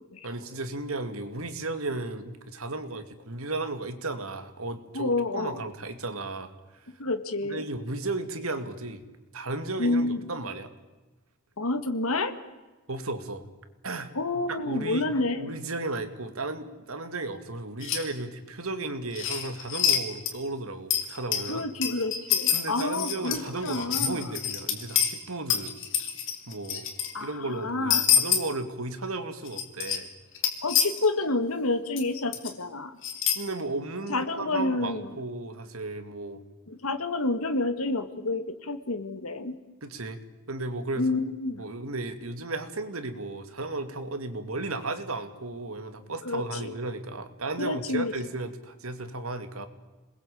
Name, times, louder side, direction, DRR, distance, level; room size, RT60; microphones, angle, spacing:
voice 1, 0.2-6.5 7.4-9.0 9.3-10.7 12.9-13.5 13.8-14.1 14.5-21.7 22.5-25.8 26.5-26.9 27.2-30.1 33.3-36.4 39.8-40.2 40.5-41.1 41.6-49.7, right 2 dB, 75° right, 9 dB, 2.6 m, -34 dB
voice 2, 4.9-5.6 7.0-7.6 9.8-10.2 11.6-12.4 14.2-15.6 21.5-24.2 27.1-28.2 30.6-33.0 34.1-35.1 36.7-39.6 41.0-41.7 46.3-46.7 47.6-48.1, left 2 dB, 80° left, 8 dB, 1.9 m, -29 dB
sound 1, 17.8-18.0 19.1-20.0 20.2-20.3 20.9-25.1 25.5-27.1 27.9-28.4 29.4-30.0 30.3-31.1 32.0-32.1 32.3-32.5 33.0-33.3, left 9 dB, 60° left, 3.8 m, -26 dB
28.0 x 21.0 x 8.7 m, 1.2 s
head